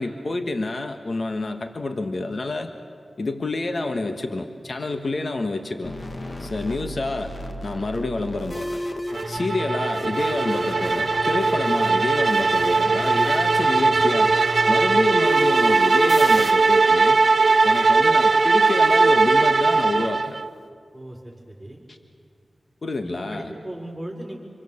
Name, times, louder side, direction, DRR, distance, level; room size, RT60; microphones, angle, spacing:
voice 1, 0.0-2.7 3.2-5.9 6.4-7.3 7.6-8.8 9.3-14.3 14.7-17.2 17.6-20.4 22.8-23.5, left 2 dB, 60° left, 6 dB, 1.5 m, -28 dB
sound 1, 5.8-16.5, equal, 45° left, 1.8 m, -33 dB
sound 2, 9.1-20.5, right 3 dB, 70° right, 0.6 m, -19 dB
voice 2, 20.9-21.8 23.0-24.4, right 1 dB, 10° right, -1 dB, 5.3 m, -38 dB
27.5 x 24.5 x 7.2 m, 2.2 s
cardioid pair, 50°, 0 cm